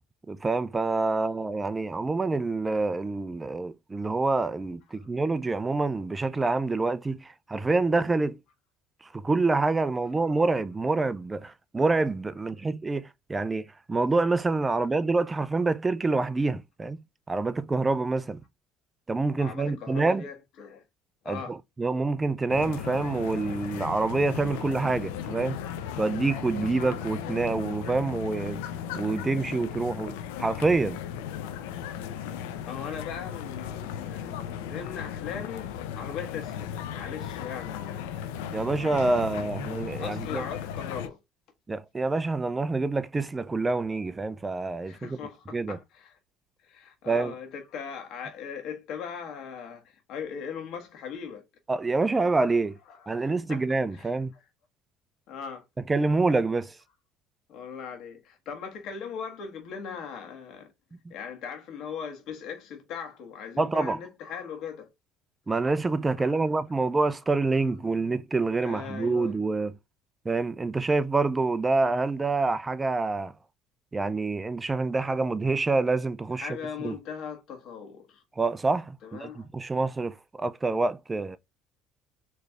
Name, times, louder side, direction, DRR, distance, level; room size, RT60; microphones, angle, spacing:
voice 1, 0.3-8.4 9.1-18.4 19.1-20.2 21.3-25.6 26.0-28.6 28.9-31.0 38.5-40.4 41.7-45.2 45.5-45.8 47.1-47.3 51.7-52.8 53.1-54.3 55.9-56.8 63.6-64.0 65.5-69.8 70.3-73.3 73.9-76.6 76.8-77.0 78.4-81.4, right 3 dB, 20° right, 0.3 m, -27 dB
voice 2, 19.4-20.8 21.2-21.6 32.7-38.2 39.6-41.2 44.8-46.2 46.6-51.4 52.9-53.6 53.9-54.4 55.3-55.6 57.5-60.7 61.1-64.9 66.2-66.4 68.6-69.3 76.4-78.2 79.0-79.5, left 7 dB, 65° left, 1.5 m, -39 dB
sound 1, 22.5-41.1, left 9 dB, 85° left, 0.5 m, -36 dB
4.3 x 3.2 x 2.4 m
supercardioid pair, 85°, 0 cm